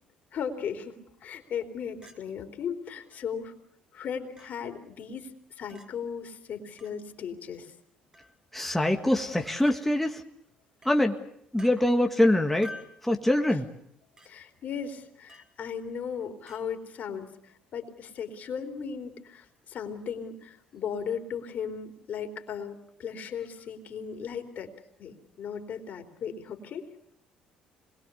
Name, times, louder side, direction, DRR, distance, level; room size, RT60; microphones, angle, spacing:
voice 1, 0.3-3.5 3.9-5.3 5.6-7.7 14.3-24.7 25.0-26.9, left 7 dB, 55° left, 6 dB, 3.7 m, -37 dB
Chink clink, 2.0-2.2 3.1-3.2 4.4-4.5 5.7-5.9 6.8-7.0 8.1-8.4 9.6-9.8 10.8-11.0 11.6-11.7 12.6-13.0 14.2-14.3 15.3-15.5 16.5-16.6, left 1 dB, 25° right, 4.7 m, -47 dB
voice 2, 8.5-10.2 10.9-11.2 11.5-12.7 13.0-13.7, left 1 dB, 5° left, 3 dB, 1.9 m, -24 dB
26.0 x 22.0 x 7.0 m, 0.72 s
supercardioid pair, 75°, 3 cm